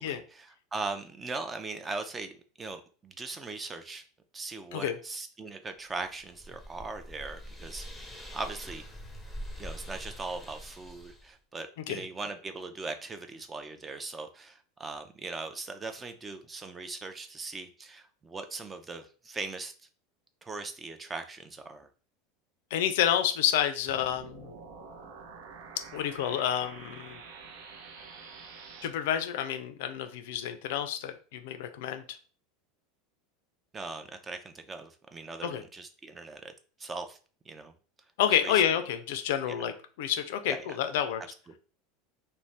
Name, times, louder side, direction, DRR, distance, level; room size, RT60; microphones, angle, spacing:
voice 1, 0.0-4.0 4.3-8.8 9.6-19.7 20.4-21.9 33.7-36.5 36.8-37.2 37.5-37.7 38.4-38.7 39.5-39.6 40.5-40.6 41.2-41.6, right 3 dB, 20° right, 7 dB, 0.4 m, -40 dB
sound 1, 6.0-11.3, equal, ahead, 0.8 m, -44 dB
voice 2, 22.7-24.5 25.9-27.2 28.8-32.2 35.4-35.6 38.2-39.7 40.0-41.2, left 10 dB, 70° left, 9 dB, 0.3 m, -29 dB
sound 2, 23.9-28.9, right 5 dB, 70° right, 0.6 m, -47 dB
2.5 x 2.1 x 3.2 m, 0.39 s
hypercardioid pair, 90°, 0 cm